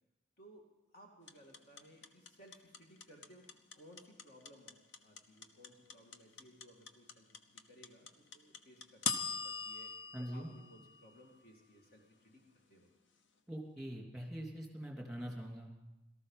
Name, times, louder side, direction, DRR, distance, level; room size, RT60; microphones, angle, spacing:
voice 1, 0.9-3.5 3.7-12.9, equal, 50° left, 0 dB, 2.4 m, -60 dB
sound 1, 1.3-11.4, left 5 dB, 65° left, 1.0 m, -41 dB
voice 2, 10.1-10.5 13.5-15.7, equal, ahead, 0 dB, 3.1 m, -43 dB
18.0 x 13.5 x 5.6 m, 0.94 s
head